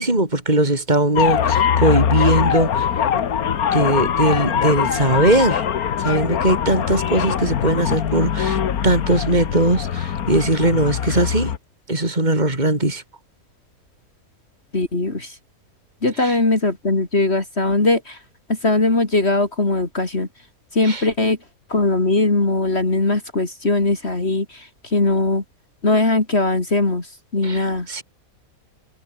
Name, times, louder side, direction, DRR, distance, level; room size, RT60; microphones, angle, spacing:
voice 1, 0.0-3.1 3.7-5.7 6.0-11.5 11.9-13.0 16.2-16.4 20.8-21.1 27.4-28.0, right 2 dB, 30° right, 4.6 m, -20 dB
sound 1, 1.2-11.6, left 8 dB, 80° left, 1.7 m, -22 dB
voice 2, 14.7-15.4 16.0-18.2 18.5-20.3 20.7-21.4 21.7-25.4 25.8-27.1 27.3-27.9, left 2 dB, 45° left, 3.6 m, -20 dB
omnidirectional pair, 1.5 m